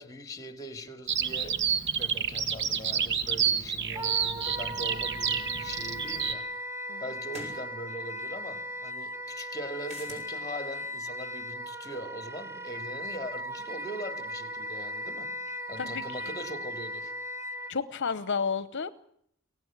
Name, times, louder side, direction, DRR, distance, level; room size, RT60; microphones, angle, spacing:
voice 1, 0.0-1.6 2.0-6.5 7.0-15.3 15.7-17.1, equal, 15° left, 2.6 m, -41 dB
Bird vocalization bird call bird song, 1.1-6.3, right 7 dB, 60° right, 1.8 m, -29 dB
Wind instrument woodwind instrument, 4.0-17.7, equal, 15° right, 1.3 m, -38 dB
sound 1, 7.3-7.6 9.8-10.3, right 1 dB, 35° right, 7.1 m, -43 dB
voice 2, 17.7-18.9, left 5 dB, 60° left, 0.9 m, -31 dB
23.5 x 18.5 x 8.9 m
head